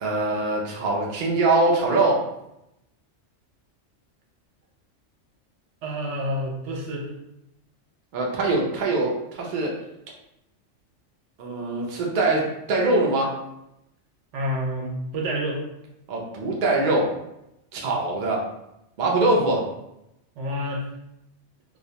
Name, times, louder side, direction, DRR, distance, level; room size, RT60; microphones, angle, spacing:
voice 1, 0.0-2.2 8.1-9.7 11.4-13.3 16.1-17.1 17.7-18.4 19.0-19.6, right 2 dB, 55° right, -2 dB, 0.5 m, -23 dB
voice 2, 5.8-7.1 14.3-15.6 20.4-20.8, equal, 75° right, -1 dB, 0.9 m, -28 dB
2.3 x 2.1 x 2.7 m, 0.85 s
omnidirectional pair, 1.3 m